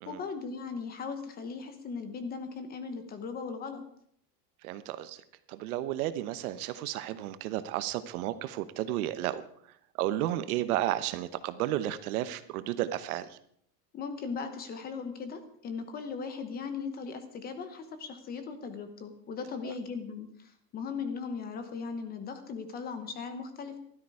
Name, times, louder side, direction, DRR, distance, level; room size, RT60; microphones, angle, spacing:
voice 1, 0.1-3.8 13.9-23.8, left 5 dB, 20° left, 9 dB, 0.9 m, -38 dB
voice 2, 4.6-5.2 5.5-9.4 10.0-13.4 19.6-19.7, right 13 dB, 60° right, 12 dB, 1.1 m, -32 dB
15.0 x 12.5 x 4.8 m, 0.66 s
supercardioid pair, 175°, 48 cm